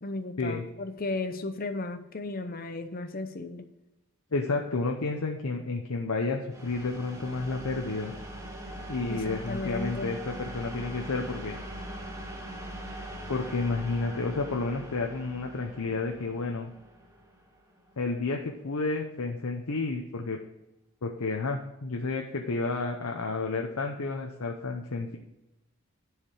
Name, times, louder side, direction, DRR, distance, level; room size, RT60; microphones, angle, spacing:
voice 1, 0.0-3.6 9.1-10.1, left 2 dB, 40° left, 9 dB, 0.8 m, -35 dB
voice 2, 4.3-8.1 8.9-11.6 13.3-16.7 18.0-20.4 21.0-25.2, left 3 dB, 80° left, 2 dB, 0.8 m, -31 dB
sound 1, 6.5-18.1, right 1 dB, 15° right, 1.1 m, -42 dB
10.5 x 4.9 x 4.8 m, 0.94 s
head